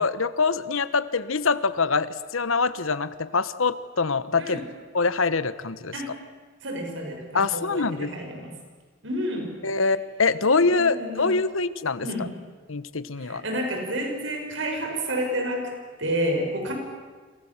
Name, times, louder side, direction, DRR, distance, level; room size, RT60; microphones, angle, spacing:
voice 1, 0.0-4.6 4.9-5.9 7.3-8.1 9.6-12.1 12.7-13.4, left 4 dB, 85° left, 14 dB, 1.2 m, -24 dB
voice 2, 6.6-8.5 9.0-9.5 10.6-11.4 12.0-12.4 13.2-15.7 16.0-16.7, equal, 65° right, 2 dB, 7.1 m, -30 dB
29.5 x 27.5 x 7.4 m, 1.5 s
head